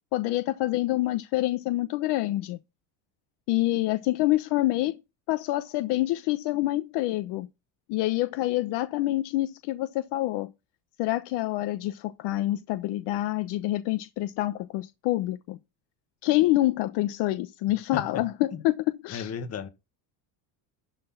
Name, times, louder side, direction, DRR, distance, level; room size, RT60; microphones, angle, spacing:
voice 1, 0.1-2.6 3.5-5.0 5.3-7.5 7.9-10.5 11.0-15.6 16.2-18.8 19.0-19.3, left 16 dB, 65° left, 1.0 m, -27 dB
voice 2, 17.9-18.2 18.5-18.6 19.1-19.7, left 6 dB, 35° left, 1.9 m, -34 dB
12.0 x 4.2 x 5.8 m
cardioid pair, 130°, 43 cm